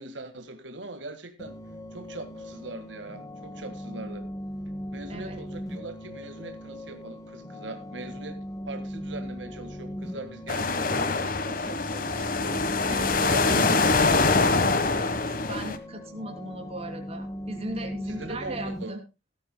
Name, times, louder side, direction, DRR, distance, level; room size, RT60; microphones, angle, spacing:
voice 1, 0.0-1.6 1.9-4.2 4.9-12.3 12.9-14.2 18.0-19.0, right 2 dB, 80° right, 1.8 m, -40 dB
sound 1, 1.4-18.8, equal, 20° left, 1.2 m, -39 dB
sound 2, 10.5-15.8, left 3 dB, 50° left, 1.3 m, -24 dB
voice 2, 13.0-13.7 14.9-19.0, right 1 dB, 30° right, 3.1 m, -38 dB
18.0 x 13.0 x 2.2 m
head